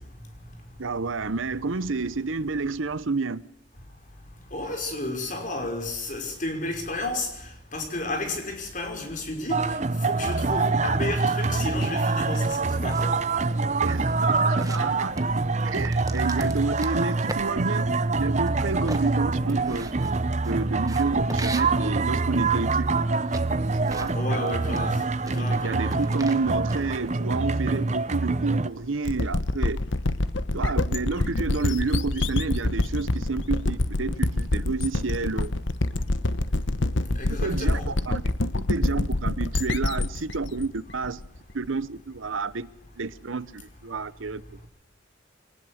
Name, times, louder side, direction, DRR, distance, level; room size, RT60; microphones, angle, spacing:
voice 1, 0.8-3.5 13.8-15.2 15.6-17.9 18.2-19.9 20.4-23.0 23.8-24.1 25.2-29.8 30.5-35.5 37.4-38.2 38.5-41.2 41.5-42.7 43.0-44.7, right 4 dB, 80° right, 0.9 m, -30 dB
voice 2, 4.5-7.3 7.7-9.8 10.0-13.2 14.6-14.7 24.1-25.0 25.3-26.0 37.2-37.9, left 2 dB, 40° left, 5.7 m, -32 dB
sound 1, 9.5-28.7, right 3 dB, 35° right, 0.7 m, -25 dB
sound 2, 12.3-27.4, right 2 dB, 15° right, 1.3 m, -42 dB
sound 3, 29.0-41.7, left 2 dB, 70° left, 1.1 m, -26 dB
24.0 x 19.5 x 6.5 m
head